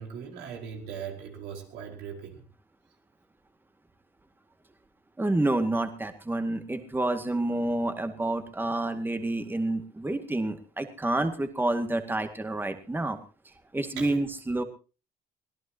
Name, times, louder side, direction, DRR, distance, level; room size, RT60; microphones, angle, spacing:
voice 1, 0.0-2.5 14.0-14.2, right 7 dB, 90° right, 3 dB, 4.8 m, -39 dB
voice 2, 5.2-13.2 13.7-14.6, right 2 dB, 10° right, 7 dB, 2.0 m, -28 dB
24.0 x 17.0 x 2.9 m, 0.34 s
cardioid pair, 110°, 17 cm